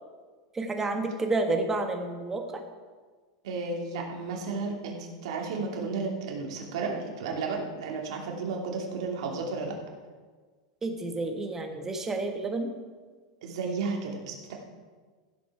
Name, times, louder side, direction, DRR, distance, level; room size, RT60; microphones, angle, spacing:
voice 1, 0.5-2.6 10.8-12.7, right 2 dB, 15° right, 4 dB, 1.5 m, -30 dB
voice 2, 3.4-9.7 13.4-14.5, right 4 dB, 75° right, 0 dB, 2.7 m, -33 dB
15.5 x 7.8 x 4.8 m, 1.4 s
supercardioid pair, 140°, 3 cm